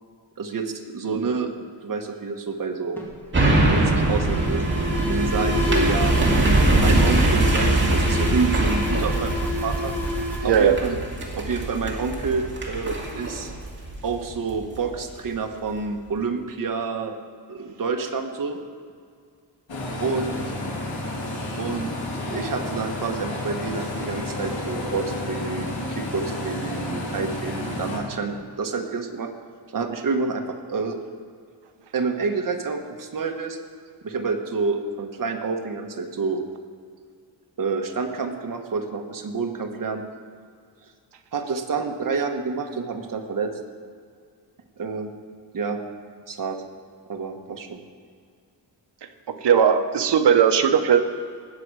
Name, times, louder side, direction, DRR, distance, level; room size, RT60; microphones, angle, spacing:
voice 1, 0.4-3.0 3.6-4.6 5.1-6.1 6.7-9.9 10.4-11.0 11.3-13.5 14.0-17.1 17.5-18.6 20.0-20.3 21.6-21.9 22.2-29.3 29.7-31.0 31.9-33.6 34.0-36.4 37.6-40.0 41.3-43.5 44.8-45.1 45.5-45.8 46.3-46.6 47.1-47.8, right 4 dB, 45° right, 4 dB, 1.2 m, -28 dB
Alarm, 3.0-11.6, left 2 dB, 5° left, 2.1 m, -31 dB
sound 1, 3.3-14.8 15.2-15.3, right 2 dB, 25° right, 2.2 m, -22 dB
voice 2, 10.4-10.8 20.7-20.8 49.3-51.0, right 8 dB, 65° right, 7 dB, 1.0 m, -18 dB
sound 2, 19.7-28.0, left 2 dB, 80° left, 3.1 m, -31 dB
19.5 x 7.7 x 4.8 m, 2.2 s
wide cardioid pair, 155°, 44 cm